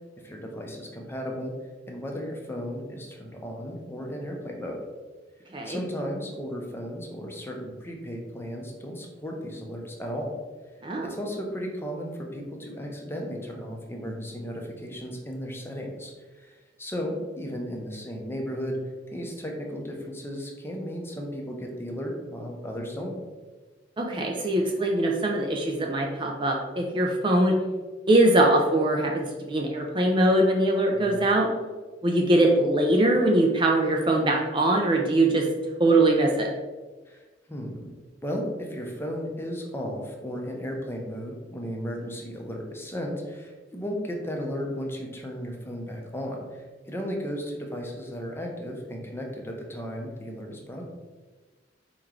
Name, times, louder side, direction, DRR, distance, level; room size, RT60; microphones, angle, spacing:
voice 1, 0.2-1.5 1.9-4.8 5.6-10.3 11.0-18.8 19.1-23.1 30.9-31.2 37.1-37.2 37.5-37.8 38.2-50.8, equal, 15° left, 0 dB, 0.6 m, -35 dB
voice 2, 24.0-27.6 28.1-31.5 32.0-35.5 35.8-36.5, right 1 dB, 25° right, 1 dB, 0.4 m, -22 dB
4.4 x 3.0 x 3.7 m, 1.3 s
head